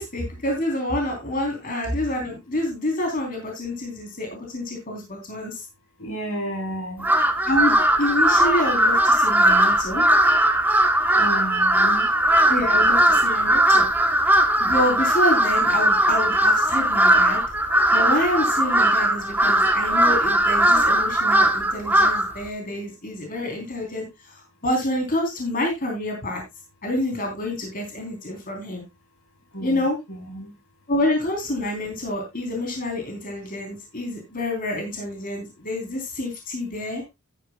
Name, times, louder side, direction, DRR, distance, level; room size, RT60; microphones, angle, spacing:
voice 1, 0.0-5.6 7.4-10.0 12.5-13.9 14.2-14.3 14.6-17.4 17.9-26.4 26.8-28.8 29.6-30.0 30.9-37.1, left 1 dB, 40° left, 3.5 m, -27 dB
voice 2, 6.0-7.1 10.5-12.5 14.5-14.6 24.5-24.6 29.1-30.9, equal, 70° left, 4.2 m, -34 dB
Crow, 7.0-22.4, right 1 dB, 10° right, 1.0 m, -19 dB
12.5 x 10.5 x 2.3 m
head